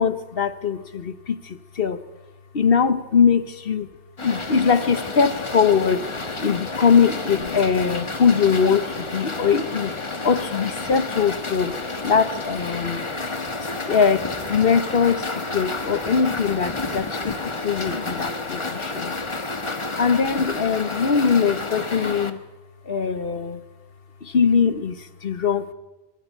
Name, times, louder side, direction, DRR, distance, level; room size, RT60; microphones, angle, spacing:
voice 1, 0.0-2.0 2.5-3.9 4.2-6.0 6.4-9.9 10.2-11.7 12.0-13.0 13.6-19.1 20.0-22.4 22.9-23.6 24.2-25.7, left 6 dB, 55° left, 12 dB, 1.3 m, -21 dB
sound 1, 4.2-22.3, left 3 dB, 25° left, 1.2 m, -30 dB
24.0 x 23.5 x 4.7 m, 1.1 s
omnidirectional pair, 1.2 m